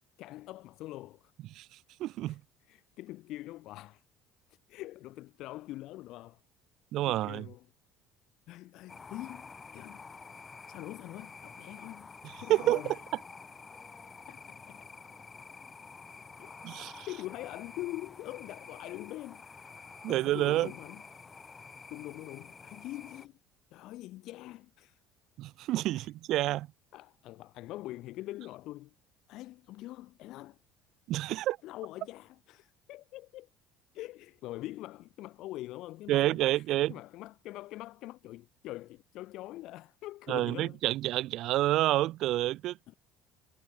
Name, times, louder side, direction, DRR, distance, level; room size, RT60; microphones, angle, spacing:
voice 1, 0.2-1.3 2.3-2.4 2.7-4.0 4.5-6.4 7.1-7.6 8.5-10.0 10.7-12.1 12.4-13.0 14.3-14.9 16.4-16.6 17.1-19.4 19.7-21.0 21.9-23.4 23.7-25.0 25.9-26.1 26.9-28.9 29.3-30.6 31.6-33.5 33.9-40.8 42.9-43.0, left 16 dB, 65° left, 7.3 m, -44 dB
voice 2, 2.0-2.4 6.9-7.5 12.2-13.0 16.6-17.1 20.0-20.7 25.4-26.7 31.1-31.6 36.1-36.9 40.3-42.9, right 15 dB, 65° right, 5.7 m, -29 dB
sound 1, 8.9-23.3, left 4 dB, 25° left, 5.5 m, -49 dB
cardioid pair, 110°, 0 cm